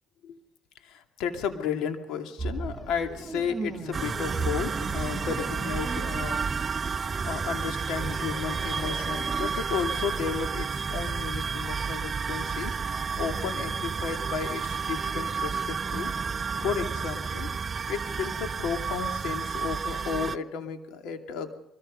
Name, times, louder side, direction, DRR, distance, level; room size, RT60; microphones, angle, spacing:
voice 1, 0.8-6.4 7.2-16.1 16.6-21.6, left 7 dB, 75° left, 5 dB, 2.6 m, -33 dB
sound 1, 2.4-9.5, right 3 dB, 15° right, 2.1 m, -36 dB
sound 2, 3.9-20.4, right 5 dB, 30° right, 0.7 m, -31 dB
23.5 x 22.0 x 5.4 m, 0.86 s
cardioid pair, 95°, 0 cm